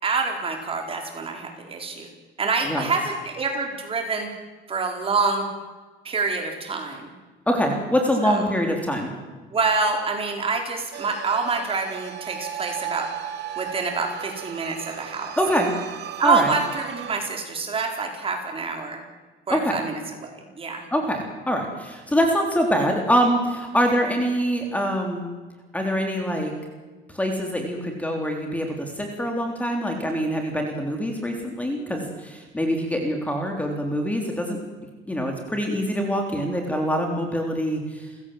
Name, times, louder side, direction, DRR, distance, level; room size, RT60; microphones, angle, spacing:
voice 1, 0.0-2.1 2.4-4.3 4.7-5.5 6.0-7.1 8.2-8.5 9.5-13.1 13.6-15.3 16.2-19.0 19.5-20.9, right 4 dB, 30° right, 3 dB, 4.5 m, -26 dB
voice 2, 7.5-9.1 15.4-15.7 16.2-16.5 19.5-19.8 20.9-25.3 25.7-26.5 27.1-34.6 35.1-38.1, equal, 5° left, 2 dB, 3.6 m, -24 dB
sound 1, 10.9-17.2, right 9 dB, 60° right, 2.3 m, -36 dB
30.0 x 16.5 x 7.8 m, 1.3 s
cardioid pair, 150°, 20 cm